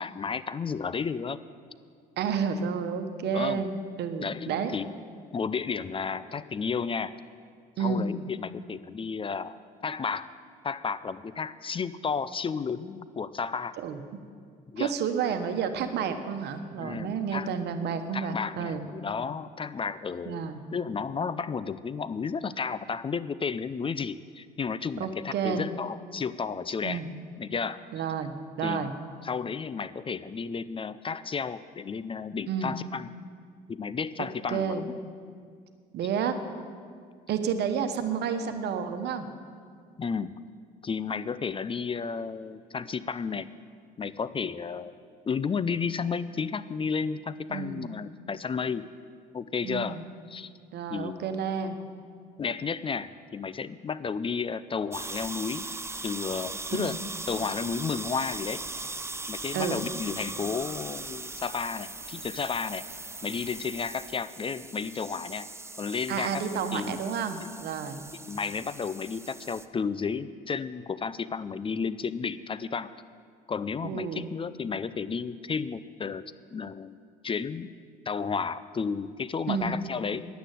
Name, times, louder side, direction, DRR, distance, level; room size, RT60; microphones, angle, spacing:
voice 1, 0.0-1.4 3.3-3.6 4.2-4.9 5.3-7.1 7.8-9.6 9.8-10.3 10.6-13.8 14.7-14.9 16.8-17.5 18.1-27.0 27.4-27.8 28.6-28.9 29.2-33.1 33.7-34.8 40.0-40.3 40.8-43.5 44.0-44.9 45.3-48.9 49.3-50.0 50.3-50.5 50.9-51.2 52.4-55.7 56.0-58.9 59.3-62.8 63.2-65.5 65.8-67.0 67.4-67.5 68.2-72.9 73.5-77.0 77.2-77.7 78.1-80.3, left 5 dB, 30° left, 15 dB, 0.5 m, -32 dB
voice 2, 2.2-4.7 7.8-8.1 13.8-14.0 14.8-18.8 20.2-20.6 25.0-25.7 26.8-27.1 27.9-28.9 32.5-32.8 34.2-34.9 35.9-36.3 37.3-39.3 47.5-47.9 49.6-50.0 50.7-51.8 56.7-57.0 59.5-59.8 66.1-68.0 73.8-74.3 79.5-79.8, right 6 dB, 65° right, 8 dB, 1.2 m, -30 dB
sound 1, 54.9-69.7, right 3 dB, 15° right, 0.8 m, -39 dB
10.0 x 9.0 x 9.0 m, 2.1 s
hypercardioid pair, 65°, 19 cm